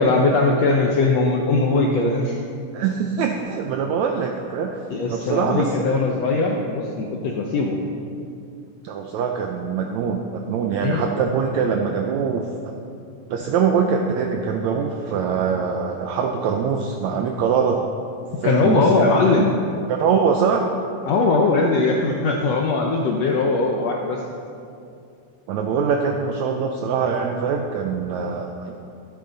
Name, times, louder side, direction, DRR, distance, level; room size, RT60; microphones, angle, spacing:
voice 1, 0.0-2.4 4.9-7.8 10.8-11.0 18.4-19.6 21.1-24.2, left 3 dB, 80° left, 1 dB, 1.4 m, -20 dB
voice 2, 2.7-4.8 5.1-5.7 8.8-12.7 13.3-17.8 18.4-19.0 19.9-20.7 25.5-28.7, right 6 dB, 85° right, 3 dB, 1.6 m, -23 dB
13.5 x 10.0 x 3.9 m, 2.5 s
omnidirectional pair, 3.9 m